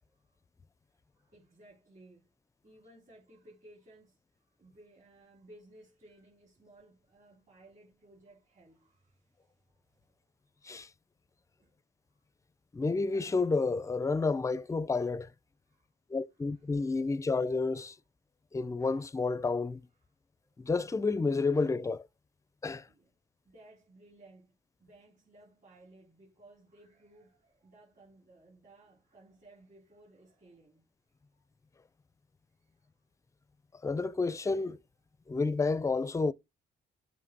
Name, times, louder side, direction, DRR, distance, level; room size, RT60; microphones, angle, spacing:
voice 1, 0.9-2.3 2.6-10.2 11.6-11.7 12.1-12.2 15.7-15.9 16.5-17.0 19.5-19.6 22.9-23.1 23.4-30.9 31.3-31.4 32.6-32.8, right 1 dB, 40° right, 3.7 m, -59 dB
voice 2, 12.7-15.3 16.1-17.9 18.5-19.8 20.6-22.0 22.6-22.9 33.8-34.8 35.3-36.3, left 3 dB, 15° left, 0.4 m, -30 dB
7.4 x 3.1 x 6.1 m
cardioid pair, 90°, 20 cm